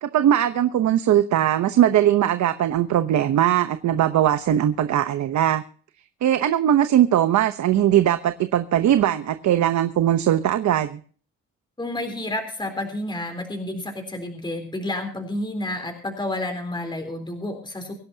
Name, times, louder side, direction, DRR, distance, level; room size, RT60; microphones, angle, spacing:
voice 1, 0.0-5.6 6.2-11.0, right 11 dB, 70° right, 9 dB, 1.0 m, -20 dB
voice 2, 11.8-17.9, left 1 dB, 15° left, 5 dB, 3.8 m, -30 dB
25.0 x 11.0 x 2.8 m, 0.43 s
cardioid pair, 90°, 30 cm